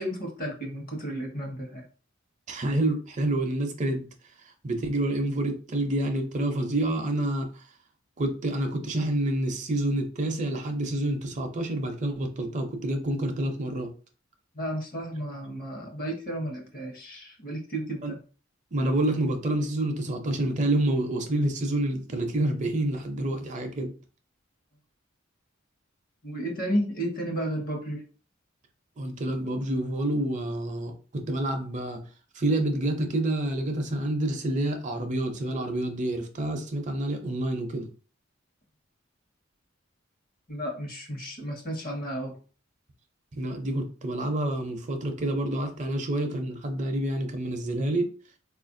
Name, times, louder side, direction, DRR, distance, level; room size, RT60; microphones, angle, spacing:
voice 1, 0.0-1.8 14.5-18.2 26.2-28.0 40.5-42.4, equal, 50° left, 1.0 m, -32 dB
voice 2, 2.5-4.1 4.6-7.6 8.2-13.9 18.0-18.1 18.7-23.9 29.0-32.0 32.3-37.9 43.3-48.1, right 1 dB, 40° right, 0.5 m, -28 dB
4.1 x 2.4 x 2.6 m
head